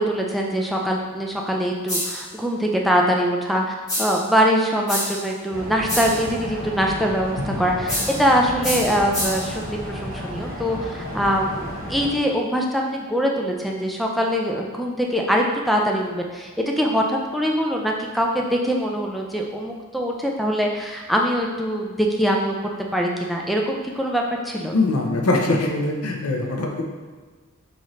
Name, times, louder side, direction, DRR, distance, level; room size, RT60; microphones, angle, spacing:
voice 1, 0.0-16.5 16.8-24.7, equal, ahead, 0 dB, 0.3 m, -23 dB
sound 1, 1.9-2.3 3.9-4.3 4.9-5.3 5.9-6.3 7.9-8.3 8.6-9.5, left 1 dB, 15° left, 1.3 m, -27 dB
sound 2, 5.5-12.1, equal, 45° right, 0.9 m, -33 dB
voice 2, 24.7-26.8, left 2 dB, 85° left, 1 dB, 0.6 m, -22 dB
4.0 x 2.5 x 3.0 m, 1.4 s
head